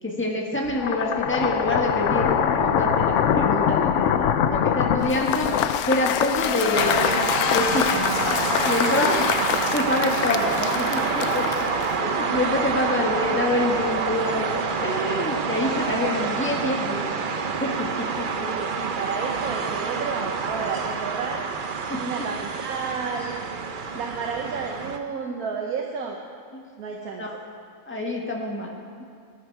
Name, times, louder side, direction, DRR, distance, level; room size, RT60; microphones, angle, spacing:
voice 1, 0.0-7.1 7.5-8.2 8.6-9.3 9.7-11.5 12.0-17.0 17.6-17.7 18.2-18.3 21.9-22.0 26.5-26.6 27.2-27.3 27.9-29.0, left 1 dB, 10° left, -1 dB, 1.5 m, -26 dB
sound 1, 0.7-8.9, left 8 dB, 65° left, 0.9 m, -24 dB
Cheering / Applause / Crowd, 5.0-12.1, left 10 dB, 85° left, 1.1 m, -26 dB
sound 2, 6.7-25.0, right 5 dB, 45° right, 0.7 m, -27 dB
voice 2, 18.4-21.5 22.0-23.4 23.9-26.2 26.8-27.4, right 5 dB, 80° right, 1 dB, 1.5 m, -31 dB
19.0 x 11.0 x 4.7 m, 2.2 s
omnidirectional pair, 1.5 m